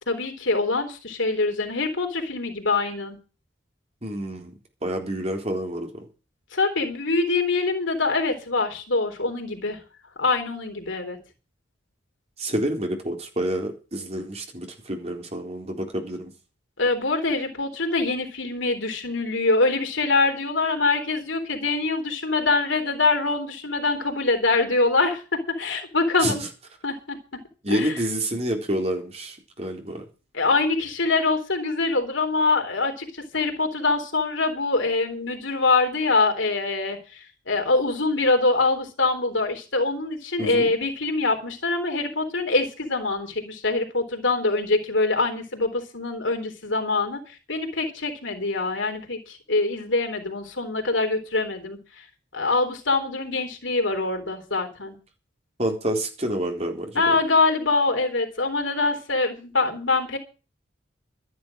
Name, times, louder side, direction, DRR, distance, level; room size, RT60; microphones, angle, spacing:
voice 1, 0.1-3.2 6.5-9.8 10.2-11.2 16.8-26.4 26.8-27.2 27.7-27.9 30.3-37.2 37.5-51.8 52.3-55.0 57.0-60.2, left 3 dB, 75° left, 5 dB, 3.7 m, -24 dB
voice 2, 4.0-4.5 4.8-6.1 12.4-16.3 26.2-26.3 27.6-30.0 40.4-40.7 55.6-57.0, right 1 dB, 30° right, 3 dB, 3.9 m, -28 dB
13.0 x 11.0 x 6.4 m, 0.34 s
head